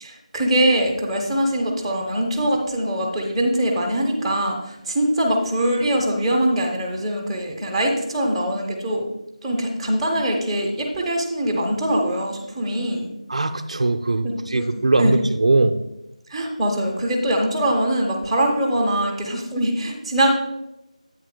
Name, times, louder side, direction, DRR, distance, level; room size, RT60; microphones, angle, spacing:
voice 1, 0.0-9.1 9.4-13.1 14.2-14.6 15.0-15.2 16.3-20.3, right 1 dB, 5° right, -3 dB, 0.8 m, -22 dB
voice 2, 13.3-15.8, right 2 dB, 60° right, 8 dB, 0.5 m, -20 dB
9.3 x 8.7 x 2.2 m, 0.88 s
figure-of-eight pair, 170°, 4 cm